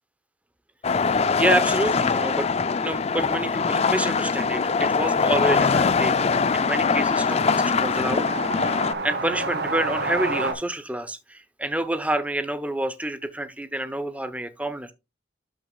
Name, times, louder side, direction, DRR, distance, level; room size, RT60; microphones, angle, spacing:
sound 1, 0.8-8.9, left 5 dB, 35° left, 0.4 m, -22 dB
voice 1, 0.9-2.5 2.8-8.3 9.0-14.9, right 1 dB, 5° right, 0.8 m, -28 dB
sound 2, 3.7-10.5, right 2 dB, 60° right, 2.0 m, -32 dB
12.0 x 6.2 x 2.3 m
head